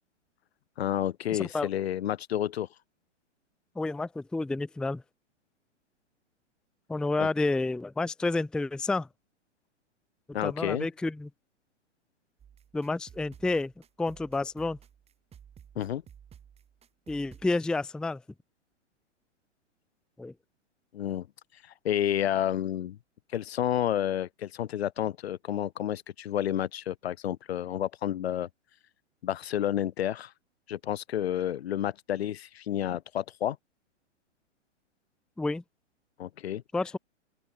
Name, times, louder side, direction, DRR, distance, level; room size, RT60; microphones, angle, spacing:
voice 1, 0.8-2.7 7.2-7.3 10.3-10.9 15.7-16.0 20.9-21.3 21.8-23.0 23.3-28.5 29.2-30.3 30.7-33.6 36.2-36.6, left 11 dB, 60° left, 1.3 m, -30 dB
voice 2, 1.3-1.7 3.8-5.0 6.9-9.1 10.4-11.3 12.7-13.7 14.0-14.8 17.1-18.2 20.2-20.3 35.4-35.6 36.7-37.0, left 3 dB, ahead, 0.7 m, -30 dB
sound 1, 12.4-17.5, right 8 dB, 15° right, 3.5 m, -54 dB
open air
figure-of-eight pair, 120°, 36 cm